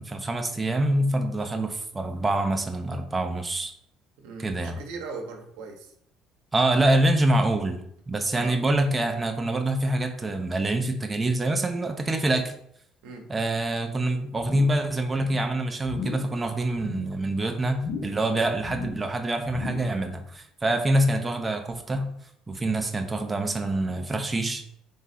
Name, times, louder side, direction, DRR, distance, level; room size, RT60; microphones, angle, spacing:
voice 1, 0.0-3.7 4.4-4.8 6.5-7.8 8.1-12.5 13.3-22.1 22.5-24.6, right 1 dB, 20° right, 4 dB, 0.5 m, -25 dB
voice 2, 4.2-5.9 8.3-8.6 13.0-13.3, right 4 dB, 85° right, 2 dB, 0.9 m, -39 dB
sound 1, 14.4-14.9 15.1-15.5 15.8-16.3 16.7-17.2 17.7-18.3 18.6-19.1 19.5-20.0 20.4-20.5, left 5 dB, 45° left, 0.6 m, -36 dB
3.6 x 3.1 x 4.1 m, 0.70 s
supercardioid pair, 95°, 0 cm